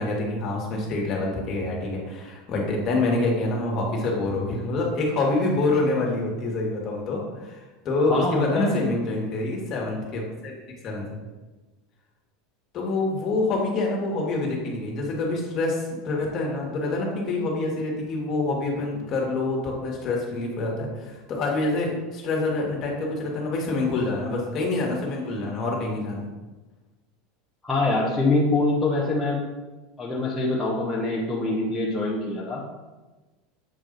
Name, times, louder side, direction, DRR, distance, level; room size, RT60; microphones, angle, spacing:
voice 1, 0.0-10.5 10.8-11.2 12.7-26.3, left 2 dB, 35° left, -1 dB, 1.6 m, -26 dB
voice 2, 8.1-8.8 27.6-29.4 30.0-32.6, left 2 dB, 10° left, -6 dB, 0.9 m, -24 dB
7.5 x 2.7 x 5.1 m, 1.2 s
supercardioid pair, 150°, 0 cm